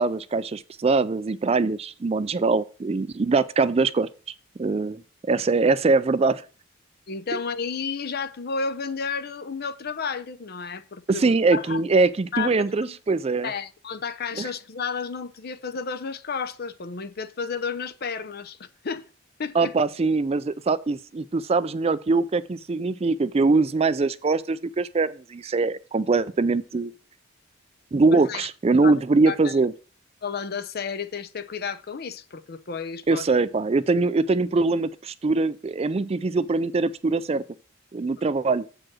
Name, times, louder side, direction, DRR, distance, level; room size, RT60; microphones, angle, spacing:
voice 1, 0.0-4.1 4.6-5.0 5.3-6.4 7.3-7.4 11.1-13.5 14.4-14.5 19.5-26.9 27.9-29.7 33.1-37.4 37.9-38.7, right 3 dB, 30° right, 0.4 m, -22 dB
voice 2, 7.1-11.8 12.3-13.0 13.4-19.1 19.4-19.7 28.1-29.0 29.3-29.5 30.2-33.2, left 5 dB, 50° left, 0.6 m, -32 dB
7.4 x 4.8 x 6.1 m
head